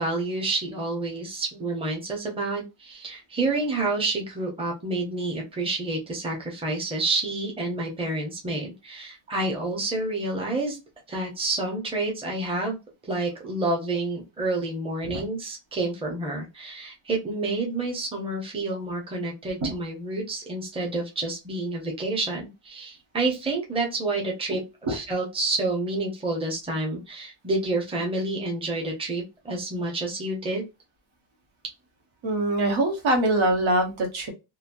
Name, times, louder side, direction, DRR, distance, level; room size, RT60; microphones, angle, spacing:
voice 1, 0.0-10.8 11.1-12.8 13.1-24.6 24.9-30.6, right 2 dB, 10° right, 0 dB, 0.7 m, -29 dB
voice 2, 32.2-34.3, right 1 dB, 75° right, 2 dB, 1.1 m, -23 dB
3.0 x 2.0 x 2.5 m, 0.26 s
wide cardioid pair, 165°, 48 cm